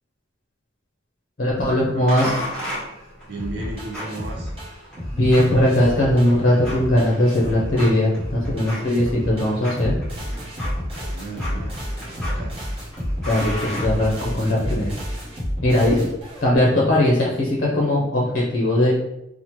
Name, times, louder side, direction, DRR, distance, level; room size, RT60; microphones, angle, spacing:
voice 1, 1.4-2.4 5.2-10.0 13.3-15.0 15.6-16.1 16.4-19.0, left 1 dB, 45° left, -5 dB, 0.6 m, -19 dB
sound 1, 2.1-14.6, equal, 5° left, 0.9 m, -36 dB
voice 2, 3.3-4.5 10.9-12.5, right 2 dB, 55° right, 0 dB, 0.5 m, -35 dB
sound 2, 3.4-16.6, equal, 30° right, 0.8 m, -30 dB
2.9 x 2.1 x 3.0 m, 0.88 s
head